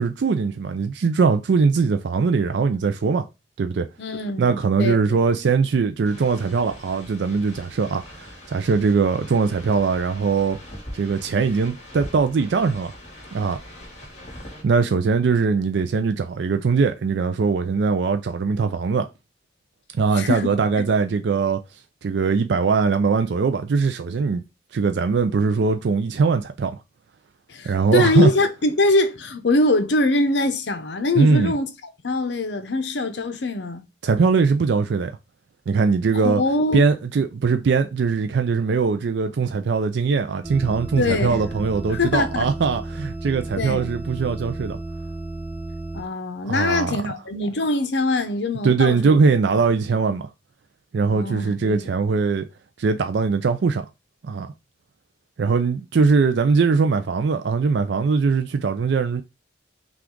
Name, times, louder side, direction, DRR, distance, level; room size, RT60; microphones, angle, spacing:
voice 1, 0.0-3.2 3.6-3.9 4.4-10.6 10.9-12.9 13.3-13.6 14.6-19.1 19.9-21.6 22.0-24.4 24.7-26.8 27.6-28.3 31.2-31.5 34.0-35.1 35.7-36.4 36.7-44.8 46.5-47.0 48.6-50.3 50.9-52.5 52.8-53.8 54.2-54.5 55.4-59.2, right 5 dB, 70° right, 0.4 m, -21 dB
voice 2, 4.0-5.2 20.1-20.5 27.5-31.7 32.0-33.8 36.1-36.8 41.0-41.4 41.9-42.5 43.6-43.9 45.9-49.2 51.1-51.9, left 2 dB, 75° left, 0.7 m, -23 dB
sound 1, 6.0-14.6, left 1 dB, 35° left, 2.5 m, -42 dB
sound 2, 40.4-46.0, right 2 dB, 10° right, 0.4 m, -33 dB
5.9 x 2.4 x 3.7 m
head